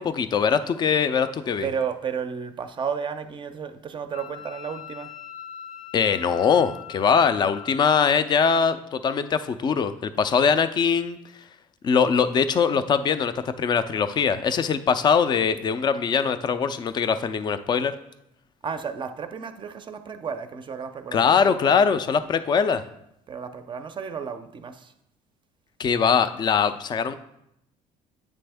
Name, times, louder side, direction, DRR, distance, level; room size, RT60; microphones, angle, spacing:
voice 1, 0.0-1.7 5.9-11.2 11.8-17.9 21.1-22.8 25.8-27.2, left 6 dB, 30° left, 0.4 m, -22 dB
voice 2, 1.6-5.1 18.6-21.8 23.3-24.9, right 6 dB, 35° right, 0.5 m, -33 dB
Wind instrument woodwind instrument, 4.1-7.9, left 9 dB, 75° left, 0.9 m, -41 dB
9.3 x 3.4 x 3.4 m
cardioid pair, 105°, 15 cm